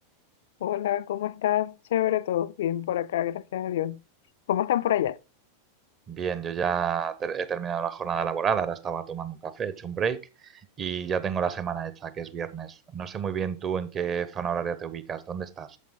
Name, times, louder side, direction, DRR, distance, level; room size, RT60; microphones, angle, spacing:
voice 1, 0.6-4.0 4.5-5.2, left 12 dB, 60° left, 0.4 m, -27 dB
voice 2, 6.1-15.8, right 7 dB, 25° right, 0.9 m, -30 dB
8.5 x 7.3 x 3.7 m
figure-of-eight pair, 90°, 0 cm